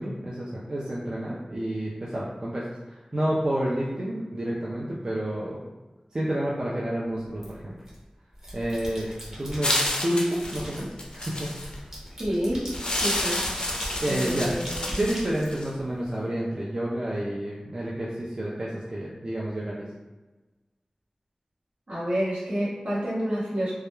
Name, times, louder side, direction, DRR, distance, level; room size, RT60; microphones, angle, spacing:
voice 1, 0.0-5.6 6.1-7.8 8.5-9.1 9.4-11.8 14.0-14.5 15.0-19.9, right 1 dB, 40° right, -6 dB, 0.4 m, -29 dB
sound 1, 7.4-8.0 8.3-9.9 10.3-16.1, equal, 25° right, 0.9 m, -39 dB
sound 2, 9.6-11.8 12.7-15.7, left 1 dB, 45° left, 0.4 m, -29 dB
voice 2, 12.2-12.7 13.0-13.4 14.1-14.9 21.9-23.7, equal, 65° right, -8 dB, 1.0 m, -28 dB
2.2 x 2.1 x 3.0 m, 1.2 s
wide cardioid pair, 70°, 2 cm